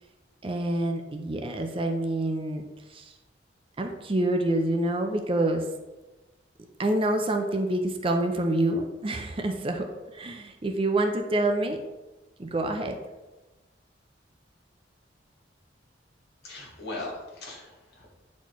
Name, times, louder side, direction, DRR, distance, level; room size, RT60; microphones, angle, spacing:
voice 1, 0.4-2.6 2.9-3.0 3.8-5.6 6.8-11.8 12.4-13.0, right 1 dB, 30° right, 4 dB, 0.5 m, -27 dB
voice 2, 16.4-18.1, left 2 dB, 60° left, -3 dB, 1.9 m, -39 dB
8.0 x 4.2 x 3.1 m, 1.1 s
head